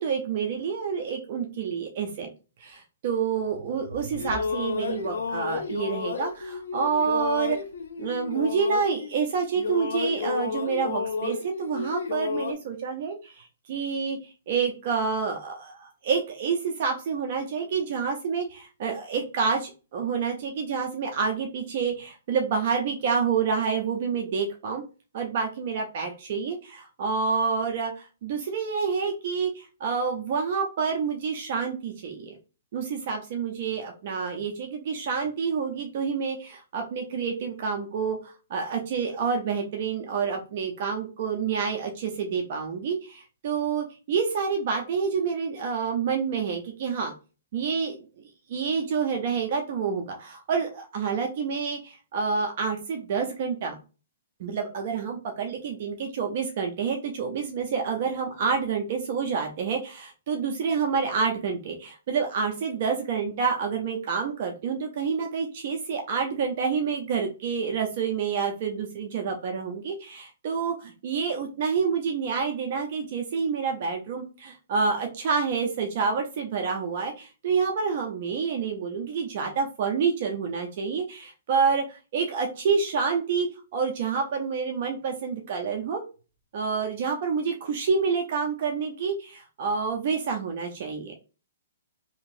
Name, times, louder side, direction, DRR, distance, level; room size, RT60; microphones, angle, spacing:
voice 1, 0.0-2.3 2.6-7.6 8.0-24.8 25.1-32.4 32.7-47.1 47.5-48.0 48.5-53.8 54.4-86.0 86.5-91.1, right 5 dB, 50° right, 3 dB, 0.6 m, -28 dB
sound 1, 3.9-9.3 9.6-12.5, left 5 dB, 75° left, 0.5 m, -32 dB
2.8 x 2.8 x 2.6 m, 0.32 s
hypercardioid pair, 145°, 0 cm